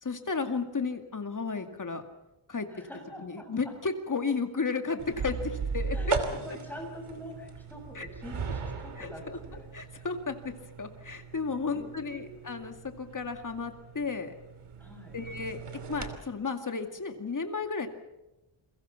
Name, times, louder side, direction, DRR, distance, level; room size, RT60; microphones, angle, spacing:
voice 1, 0.0-2.0 2.5-2.7 3.2-6.0 7.9-8.1 9.0-9.4 9.7-10.5 10.8-14.3 15.1-15.6 15.9-17.9, left 4 dB, 40° left, 6 dB, 2.3 m, -33 dB
voice 2, 2.7-3.7 5.9-9.7 11.7-12.6 14.8-15.2, left 1 dB, 5° left, 1 dB, 7.3 m, -45 dB
sound 1, 5.0-16.2, right 4 dB, 90° right, 2.8 m, -38 dB
29.5 x 22.5 x 5.8 m, 0.96 s
wide cardioid pair, 150°, 49 cm